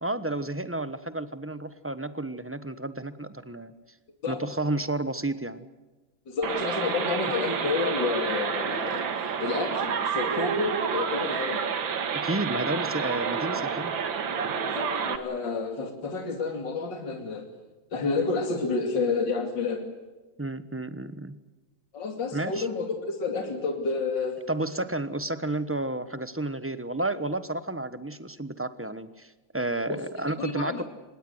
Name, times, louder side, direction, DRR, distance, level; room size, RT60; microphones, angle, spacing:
voice 1, 0.0-3.7 4.3-5.6 12.1-13.9 20.4-21.4 22.3-22.7 24.5-30.9, right 2 dB, 10° right, 13 dB, 0.6 m, -31 dB
voice 2, 6.3-11.6 14.6-17.4 17.9-19.8 21.9-24.4 29.9-30.9, left 4 dB, 60° left, 4 dB, 3.4 m, -30 dB
sound 1, 6.4-15.2, right 6 dB, 65° right, 2.4 m, -29 dB
26.0 x 20.5 x 8.0 m, 1.2 s
omnidirectional pair, 2.3 m